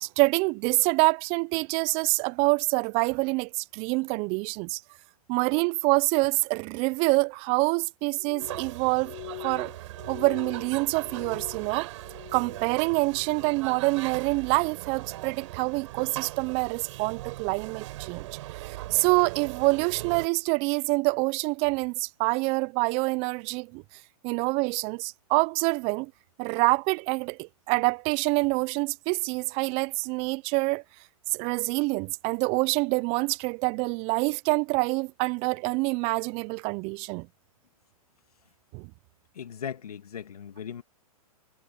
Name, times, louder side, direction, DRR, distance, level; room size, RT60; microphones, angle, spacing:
voice 1, 0.0-4.8 5.3-9.7 10.1-11.9 12.3-18.3 18.6-23.8 24.2-26.1 26.4-30.8 31.3-37.3 38.7-38.9, right 28 dB, 35° right, 0.5 m, -26 dB
Glass, 8.1-12.7 13.0-13.7 14.1-14.6 15.2-15.5, left 28 dB, 40° left, 0.7 m, -45 dB
sound 1, 8.4-20.3, right 17 dB, 55° right, 4.6 m, -40 dB
voice 2, 39.3-40.8, left 8 dB, 80° left, 2.1 m, -38 dB
hypercardioid pair, 120°, 19 cm